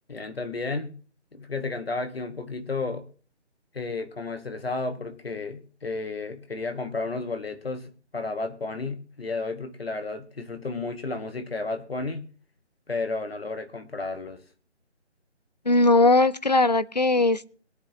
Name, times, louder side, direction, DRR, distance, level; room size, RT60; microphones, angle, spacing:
voice 1, 0.1-1.0 1.3-3.1 3.7-12.3 12.9-14.4, left 3 dB, 55° left, 1.4 m, -32 dB
voice 2, 15.7-17.5, left 2 dB, 40° left, 0.5 m, -19 dB
21.5 x 10.0 x 2.8 m
figure-of-eight pair, 155°, 35 cm